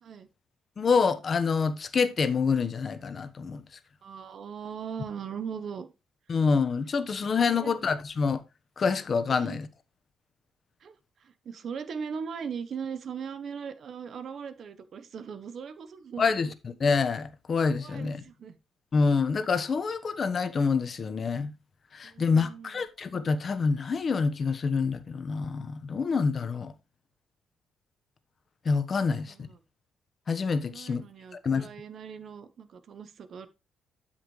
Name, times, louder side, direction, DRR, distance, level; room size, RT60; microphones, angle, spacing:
voice 1, 0.8-3.6 6.3-8.4 8.8-9.7 16.2-18.2 18.9-21.5 21.9-26.7 28.6-29.5 30.3-31.0 31.4-31.7, left 5 dB, 45° left, 1.2 m, -27 dB
voice 2, 4.0-5.9 7.5-7.7 9.3-9.6 10.8-10.9 11.2-16.2 17.8-18.6 22.0-22.8 29.1-29.6 30.7-33.5, right 6 dB, 55° right, 1.1 m, -39 dB
12.5 x 5.8 x 3.2 m
cardioid pair, 90°, 0 cm